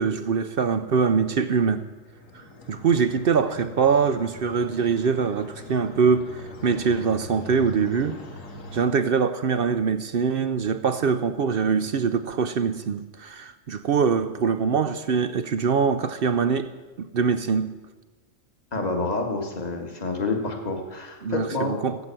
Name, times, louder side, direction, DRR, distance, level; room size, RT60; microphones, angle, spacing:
voice 1, 0.0-1.8 2.3-8.2 8.7-16.7 17.0-17.8 21.2-22.0, right 6 dB, 55° right, 11 dB, 0.7 m, -23 dB
sound 1, 1.9-8.9, left 3 dB, 80° left, 1.9 m, -42 dB
voice 2, 18.7-21.7, left 3 dB, 30° left, 3 dB, 1.8 m, -28 dB
16.5 x 8.2 x 7.6 m, 1.2 s
omnidirectional pair, 1.3 m